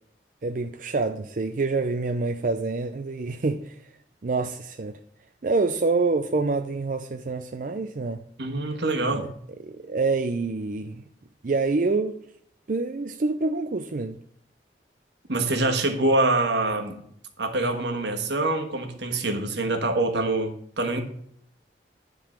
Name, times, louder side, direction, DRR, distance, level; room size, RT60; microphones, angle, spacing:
voice 1, 0.4-3.8 4.2-5.0 5.4-8.2 9.1-9.3 9.6-11.0 11.4-12.1 12.7-14.2, right 3 dB, 50° right, 0.5 m, -26 dB
voice 2, 8.4-9.3 15.3-17.0 17.4-21.0, right 2 dB, 80° right, 1.4 m, -25 dB
10.0 x 3.9 x 7.2 m
head